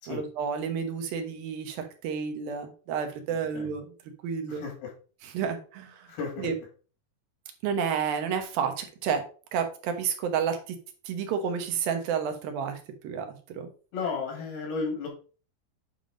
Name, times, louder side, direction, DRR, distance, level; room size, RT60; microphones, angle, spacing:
voice 1, 0.1-3.8 4.2-4.6 5.3-6.1 6.4-6.5 7.6-9.2 9.5-10.8 11.1-12.8 13.0-13.7, right 7 dB, 75° right, 5 dB, 2.9 m, -30 dB
voice 2, 3.3-3.7 4.5-4.9 6.1-6.5 13.9-15.1, left 4 dB, 85° left, 0 dB, 4.4 m, -34 dB
9.1 x 3.7 x 5.0 m, 0.38 s
omnidirectional pair, 4.3 m